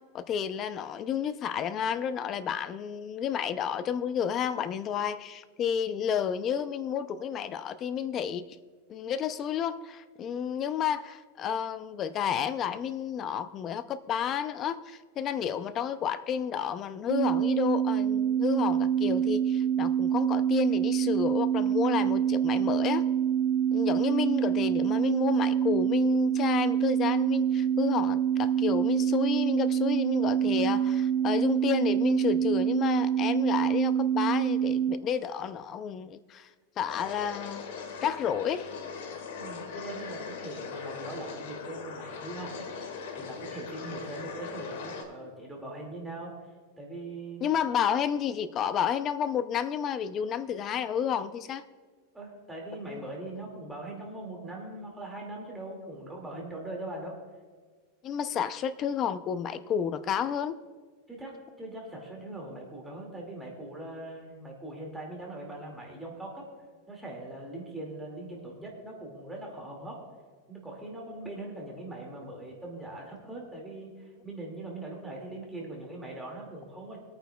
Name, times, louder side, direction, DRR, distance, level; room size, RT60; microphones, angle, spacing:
voice 1, 0.1-8.4 8.9-23.0 23.7-36.5 36.8-37.7 38.0-38.7 47.4-51.6 52.9-53.0 58.0-60.6, left 8 dB, 30° left, 14 dB, 0.4 m, -31 dB
sound 1, 17.1-34.9, right 9 dB, 80° right, 1.0 m, -26 dB
sound 2, 36.9-45.0, left 5 dB, 75° left, 1.8 m, -40 dB
voice 2, 39.4-46.3 46.8-47.5 52.1-57.2 61.1-66.5 66.9-70.0 70.5-77.0, right 2 dB, 5° right, -2 dB, 2.1 m, -41 dB
25.5 x 9.1 x 2.3 m, 1.5 s
supercardioid pair, 155°, 0 cm